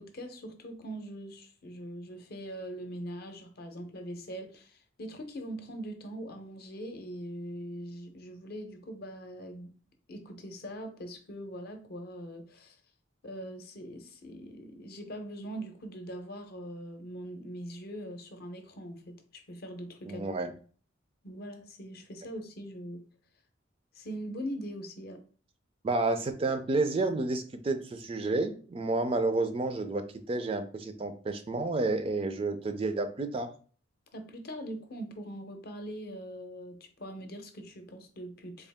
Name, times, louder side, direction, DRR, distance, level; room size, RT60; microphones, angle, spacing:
voice 1, 0.0-9.8 10.1-12.8 13.2-20.3 21.2-23.0 23.9-25.2 34.1-38.7, equal, 55° left, 0.6 m, -42 dB
voice 2, 20.1-20.5 25.8-33.5, right 3 dB, 30° right, 0.3 m, -30 dB
3.7 x 2.3 x 3.4 m
head